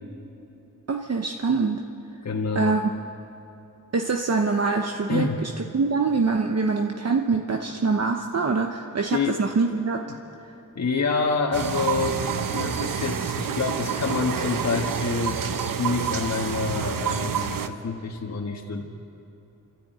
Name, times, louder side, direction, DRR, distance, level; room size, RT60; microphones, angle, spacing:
voice 1, 0.9-1.8 2.5-2.8 3.9-10.0, right 4 dB, 50° right, 3 dB, 1.0 m, -24 dB
voice 2, 2.2-2.8 5.1-5.4 7.3-7.4 9.1-9.4 10.7-12.2 12.5-15.4 15.8-18.8, left 4 dB, 55° left, 0 dB, 1.5 m, -27 dB
sound 1, 11.5-17.7, right 7 dB, 80° right, 1.0 m, -28 dB
30.0 x 13.0 x 9.2 m, 2.8 s
wide cardioid pair, 140°, 33 cm